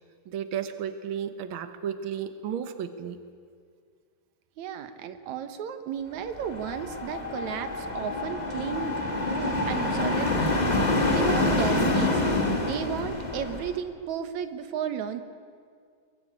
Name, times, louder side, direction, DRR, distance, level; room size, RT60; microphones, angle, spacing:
voice 1, 0.3-3.2, right 8 dB, 85° right, 9 dB, 1.1 m, -33 dB
voice 2, 4.6-8.9 9.3-10.6 11.1-12.2 12.6-15.2, right 9 dB, 65° right, 10 dB, 2.3 m, -34 dB
sound 1, 6.3-13.7, left 2 dB, 15° left, 1.9 m, -27 dB
23.0 x 22.5 x 8.7 m, 2.1 s
omnidirectional pair, 3.9 m